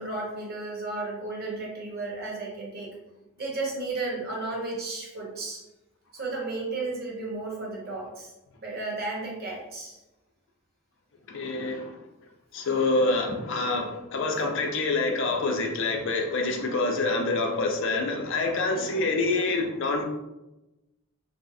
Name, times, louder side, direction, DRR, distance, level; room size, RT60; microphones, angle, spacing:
voice 1, 0.0-2.9 3.4-5.6 6.1-8.3 8.6-10.0 18.7-19.1, right 3 dB, 45° right, -3 dB, 1.0 m, -33 dB
voice 2, 11.3-11.9 12.5-20.0, left 3 dB, 60° left, 2 dB, 0.5 m, -26 dB
3.2 x 2.7 x 2.6 m, 0.97 s
head